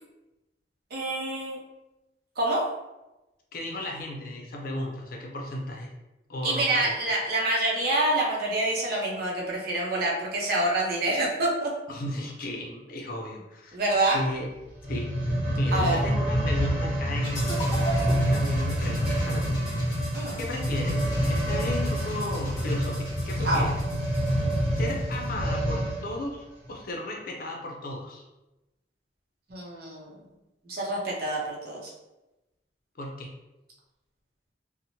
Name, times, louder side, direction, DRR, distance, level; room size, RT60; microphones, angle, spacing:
voice 1, 0.9-1.6 2.4-2.6 6.4-11.7 13.7-14.2 15.7-16.0 20.1-20.4 23.4-23.6 29.5-30.1 30.7-31.9, right 2 dB, 60° right, -3 dB, 0.7 m, -26 dB
voice 2, 3.5-5.9 6.3-6.9 11.9-13.8 14.1-14.5 14.9-15.2 15.5-19.6 20.4-21.0 21.3-23.7 24.8-28.2 33.0-33.3, left 1 dB, 55° left, 0 dB, 0.5 m, -35 dB
sound 1, 14.7-26.1 26.7-26.8, equal, 35° right, 1.1 m, -27 dB
sound 2, 17.2-25.3, right 1 dB, 20° left, 0.9 m, -40 dB
2.9 x 2.1 x 2.7 m, 1.0 s
head